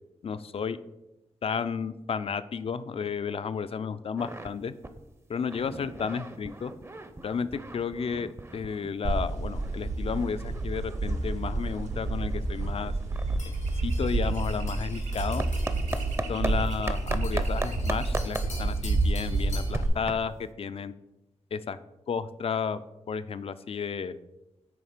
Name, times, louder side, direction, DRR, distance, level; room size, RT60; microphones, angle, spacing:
voice 1, 0.2-0.8 1.4-4.7 5.3-6.7 7.2-12.9 13.8-15.5 16.3-20.9 21.5-21.8 22.1-22.8 23.1-24.2, left 6 dB, 55° left, 14 dB, 0.4 m, -32 dB
sound 1, 4.2-4.5 4.8-5.0 5.3-8.9 9.3-16.5 16.9-20.5, right 2 dB, 20° right, 0.6 m, -38 dB
sound 2, 9.0-19.9, right 2 dB, 85° right, 1.0 m, -29 dB
sound 3, 13.4-19.8, left 3 dB, 85° left, 2.5 m, -47 dB
8.7 x 3.2 x 5.0 m, 0.96 s
cardioid pair, 70°, 12 cm